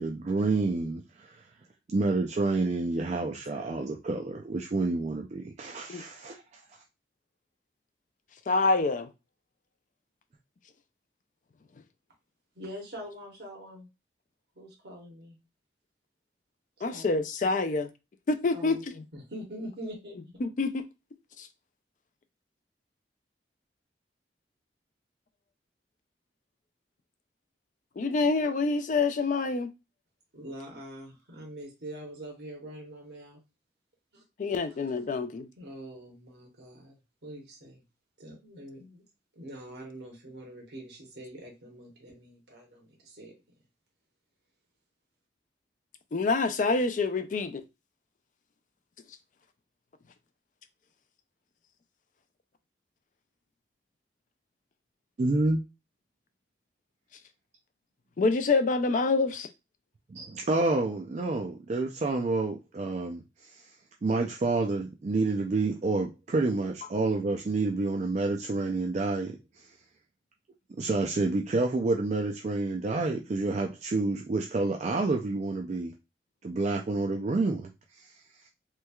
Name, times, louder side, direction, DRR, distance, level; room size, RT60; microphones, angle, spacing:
voice 1, 0.0-1.4 1.9-6.4 55.2-55.6 60.1-63.2 63.5-63.6 64.0-69.4 70.8-75.9 76.4-78.1, right 3 dB, 40° right, 0.3 m, -28 dB
voice 2, 8.5-9.1 16.8-17.9 18.3-18.8 20.4-20.8 21.4-21.5 28.0-29.7 34.4-35.5 46.1-47.6 58.2-59.5, left 3 dB, 45° left, 0.4 m, -26 dB
voice 3, 12.6-13.9 14.6-15.4 16.9-17.2 18.5-18.8 19.1-20.2 30.3-33.4 34.1-34.2 34.7-35.1 35.6-37.8 38.2-39.0 39.3-43.3, equal, 70° right, 1.0 m, -44 dB
3.2 x 3.0 x 2.3 m
head